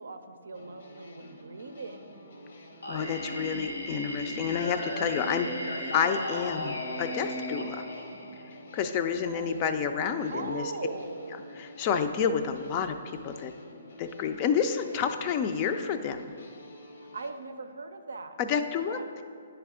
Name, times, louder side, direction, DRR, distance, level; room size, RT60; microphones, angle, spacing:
voice 1, 0.0-2.2 5.4-5.8 9.2-9.6 10.3-11.6 17.1-18.3 18.9-19.0, right 4 dB, 80° right, 8 dB, 0.5 m, -39 dB
sound 1, 0.5-17.3, left 1 dB, 70° left, 0.8 m, -50 dB
Singing, 2.8-8.8, left 1 dB, 85° left, 1.1 m, -35 dB
voice 2, 2.9-5.5 5.9-7.8 8.7-10.6 11.6-13.0 13.2-13.5 14.0-16.3 18.4-19.0, left 7 dB, 35° left, 8 dB, 0.4 m, -29 dB
9.9 x 3.4 x 3.6 m, 2.2 s
figure-of-eight pair, 130°, 0 cm